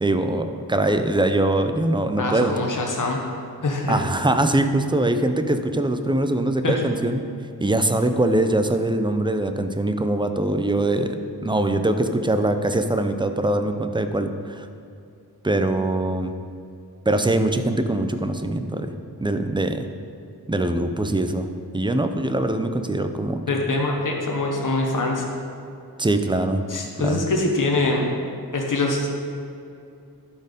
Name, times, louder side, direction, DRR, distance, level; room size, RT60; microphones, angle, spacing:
voice 1, 0.0-2.5 3.9-7.3 7.6-11.2 11.4-14.7 15.4-16.3 17.1-18.9 19.2-19.9 20.5-23.4 26.0-26.7 27.0-27.2, right 1 dB, 15° right, 7 dB, 0.5 m, -22 dB
voice 2, 2.2-3.2 3.6-4.0 6.6-6.8 23.5-25.2 26.7-28.1 28.5-29.1, left 2 dB, 55° left, 0 dB, 1.1 m, -23 dB
12.0 x 4.5 x 5.1 m, 2.5 s
wide cardioid pair, 70°, 38 cm